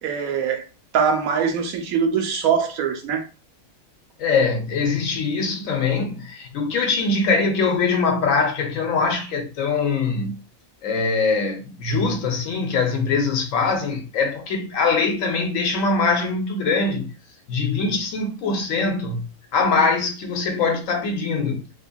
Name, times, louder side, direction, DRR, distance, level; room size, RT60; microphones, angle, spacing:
voice 1, 0.0-0.7 0.9-3.3, right 6 dB, 85° right, 1.1 m, -22 dB
voice 2, 4.2-10.4 10.8-17.1 17.5-21.6, left 4 dB, 75° left, 1.0 m, -22 dB
2.8 x 2.5 x 2.2 m
omnidirectional pair, 1.4 m